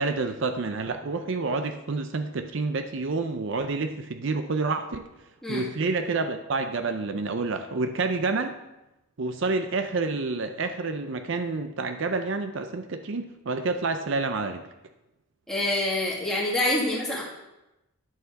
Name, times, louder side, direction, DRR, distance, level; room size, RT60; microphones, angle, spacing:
voice 1, 0.0-5.0 5.5-8.6 9.2-14.7, right 3 dB, 60° right, 8 dB, 0.5 m, -28 dB
voice 2, 15.5-17.2, left 1 dB, ahead, -6 dB, 2.1 m, -26 dB
10.5 x 6.8 x 4.0 m, 0.95 s
head